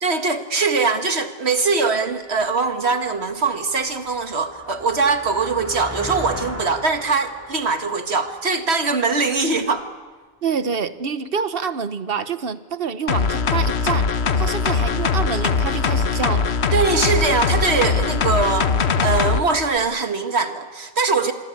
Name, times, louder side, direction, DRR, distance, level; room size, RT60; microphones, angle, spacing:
voice 1, 0.0-9.9 16.7-18.7 19.0-21.3, right 4 dB, 90° right, 7 dB, 2.0 m, -22 dB
sound 1, 2.4-2.5 3.0-9.6, equal, 15° right, 4.3 m, -37 dB
voice 2, 10.4-14.1 14.4-16.6, right 6 dB, 65° right, 13 dB, 1.2 m, -26 dB
sound 2, 13.1-19.4 19.8-19.9, left 5 dB, 90° left, 1.3 m, -21 dB
26.0 x 24.5 x 8.5 m, 1.3 s
omnidirectional pair, 1.1 m